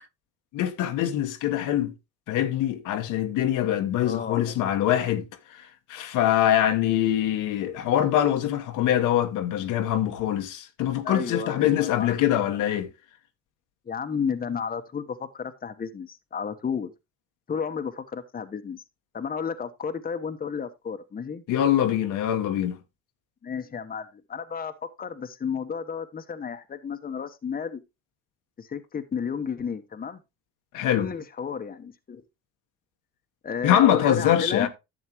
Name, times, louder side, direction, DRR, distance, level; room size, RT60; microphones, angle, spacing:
voice 1, 0.5-1.9 2.3-12.9 21.5-22.8 30.7-31.1 33.6-34.7, left 11 dB, 70° left, 1.2 m, -24 dB
voice 2, 4.0-4.5 7.8-7.9 11.0-12.1 12.5-12.6 13.9-16.9 17.5-18.8 19.1-21.4 23.4-24.7 25.0-27.8 28.6-30.2 30.8-32.2 33.4-34.7, left 6 dB, 25° left, 1.0 m, -32 dB
11.0 x 7.2 x 3.0 m
supercardioid pair, 80°, 33 cm